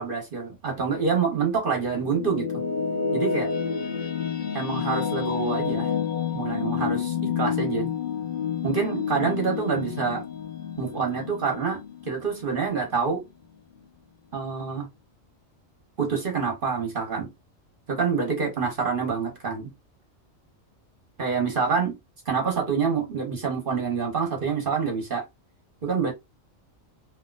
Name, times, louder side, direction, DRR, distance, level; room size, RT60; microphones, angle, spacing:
voice 1, 0.0-2.5 3.1-3.5 4.5-5.9 6.3-7.9 8.6-10.2 10.8-11.8 12.1-13.2 14.3-14.9 16.0-17.3 17.9-19.7 21.2-21.9 22.3-25.2 25.8-26.1, right 5 dB, 45° right, 1.0 m, -26 dB
sound 1, 1.6-12.9, left 7 dB, 45° left, 0.7 m, -29 dB
3.6 x 2.6 x 2.3 m
omnidirectional pair, 1.4 m